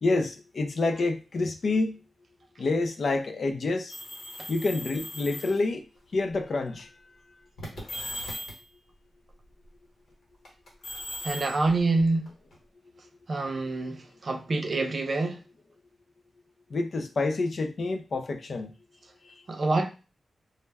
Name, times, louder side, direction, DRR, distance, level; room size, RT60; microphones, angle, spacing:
voice 1, 0.0-2.0 2.6-4.0 4.5-5.9 6.1-6.9 16.7-18.7 19.2-19.3, left 3 dB, 60° left, 0.4 m, -28 dB
sound 1, 3.9-5.6 6.5-6.8 7.6-8.7 10.4-12.5, left 1 dB, 80° left, 1.0 m, -38 dB
voice 2, 11.2-12.3 13.3-15.4 19.5-19.9, right 3 dB, 50° right, 0.5 m, -26 dB
2.1 x 2.1 x 3.3 m
wide cardioid pair, 95°, 0 cm